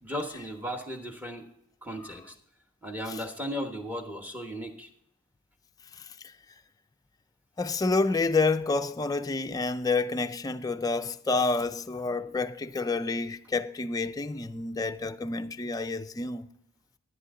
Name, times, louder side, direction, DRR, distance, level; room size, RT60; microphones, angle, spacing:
voice 1, 0.0-1.4 1.8-2.3 2.8-4.9, equal, 5° right, 1.1 m, -36 dB
voice 2, 7.6-16.5, left 3 dB, 15° left, 0.4 m, -28 dB
11.0 x 10.5 x 3.7 m
head